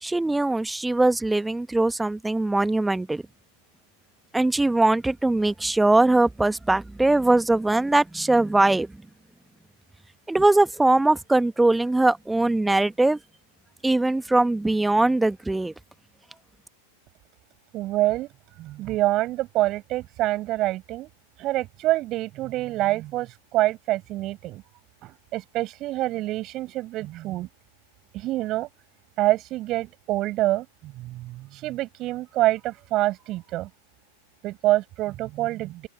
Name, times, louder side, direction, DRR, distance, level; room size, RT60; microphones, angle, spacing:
voice 1, 0.0-3.2 4.3-8.9 10.3-13.2 13.8-15.7, right 2 dB, 5° right, 1.4 m, -21 dB
voice 2, 17.7-18.3 18.6-21.1 21.4-24.6 25.0-27.5 28.1-28.7 29.2-33.7 34.4-35.9, right 16 dB, 35° right, 6.9 m, -26 dB
open air
figure-of-eight pair, 90°, 0 cm